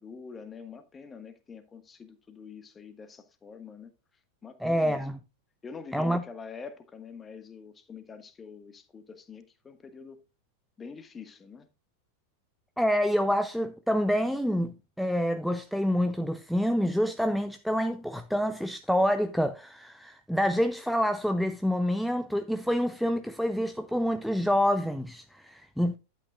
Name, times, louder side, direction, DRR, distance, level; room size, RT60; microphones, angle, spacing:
voice 1, 0.0-3.9 4.4-5.1 5.6-10.2 10.8-11.7, left 5 dB, 20° left, 1.3 m, -45 dB
voice 2, 4.6-5.2 5.9-6.2 12.8-26.0, equal, ahead, 0.5 m, -27 dB
11.0 x 9.2 x 2.3 m
figure-of-eight pair, 90°, 0 cm